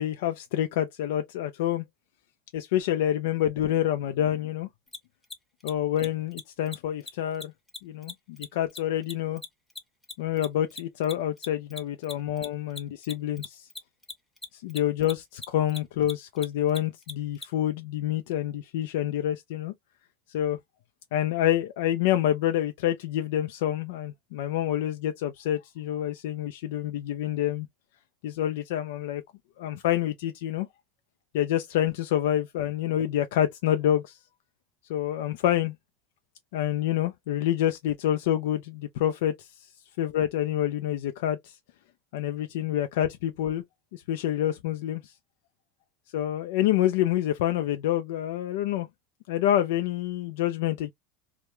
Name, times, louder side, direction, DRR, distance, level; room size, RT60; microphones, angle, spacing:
voice 1, 0.0-1.8 2.5-4.7 5.6-7.5 7.8-9.4 10.2-13.7 14.5-19.7 20.3-20.6 21.1-27.7 28.2-29.2 29.6-30.7 31.3-34.2 34.9-35.7 36.5-39.5 40.0-41.6 42.1-43.6 43.9-45.1 46.1-48.9 49.3-50.9, left 12 dB, 80° left, 0.3 m, -27 dB
Mechanisms, 4.9-5.0 5.2-5.4 5.6-5.7 6.0-6.1 6.3-6.4 6.7-6.8 7.0-7.1 7.4-10.1 10.4-17.5, left 3 dB, 10° left, 0.7 m, -39 dB
2.2 x 2.1 x 2.9 m
supercardioid pair, 125°, 0 cm